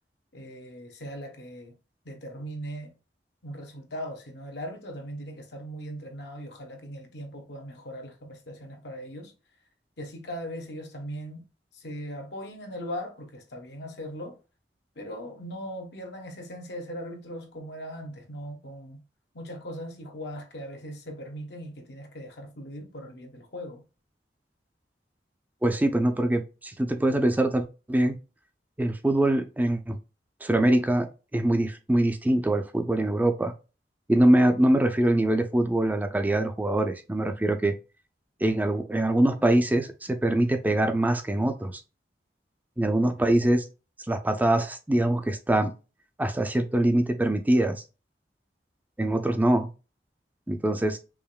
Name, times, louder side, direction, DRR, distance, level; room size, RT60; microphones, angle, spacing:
voice 1, 0.3-1.7 2.0-2.9 3.4-9.3 10.0-11.4 11.7-14.4 15.0-19.0 19.3-23.8, equal, 70° left, 1.0 m, -39 dB
voice 2, 25.6-28.2 28.8-30.0 30.4-33.5 34.1-37.8 38.4-41.8 42.8-43.6 44.1-45.7 46.2-47.8 49.0-49.7 50.5-51.0, right 1 dB, 10° right, 0.3 m, -23 dB
4.8 x 2.9 x 2.2 m
head